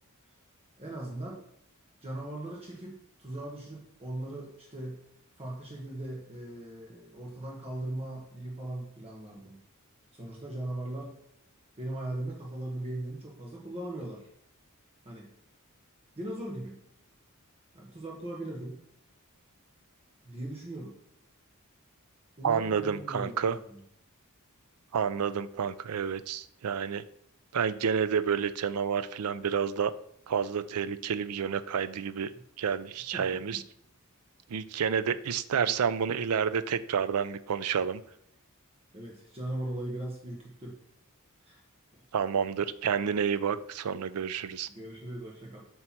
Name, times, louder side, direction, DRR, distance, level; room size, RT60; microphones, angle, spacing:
voice 1, 0.8-1.5 2.0-5.0 5.4-9.6 10.1-11.2 11.8-14.3 15.0-15.3 16.2-16.8 17.7-18.8 20.2-20.9 22.4-23.8 33.1-33.3 33.5-33.6 38.9-40.8 41.4-41.6 44.7-45.7, right 1 dB, 25° right, -3 dB, 1.1 m, -39 dB
voice 2, 22.4-23.6 24.9-27.0 27.5-29.9 30.3-32.3 32.6-33.6 34.5-38.0 42.1-44.7, right 7 dB, 90° right, 14 dB, 0.4 m, -29 dB
7.6 x 2.9 x 5.9 m, 0.74 s
head